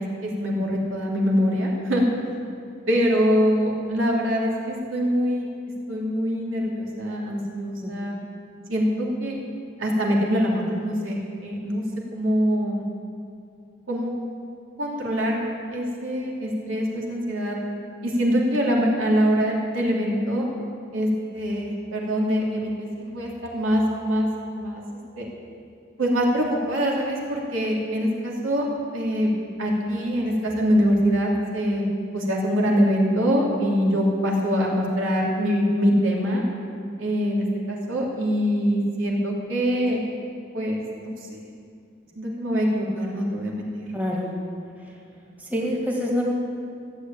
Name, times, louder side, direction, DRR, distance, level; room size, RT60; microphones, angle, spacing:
voice 1, 0.0-2.0 2.9-5.5 5.9-8.2 8.7-9.4 9.8-12.8 13.9-14.1 14.8-15.4 15.7-17.6 18.0-20.5 20.9-24.3 24.5-24.8 25.2-25.3 26.0-28.7 28.9-29.3 29.6-31.9 32.1-36.4 37.0-40.0 40.5-41.4 42.1-43.9, equal, 80° right, -3 dB, 3.1 m, -24 dB
voice 2, 43.9-44.3 45.5-46.3, equal, 10° right, -3 dB, 2.0 m, -25 dB
14.5 x 8.2 x 9.0 m, 2.4 s
head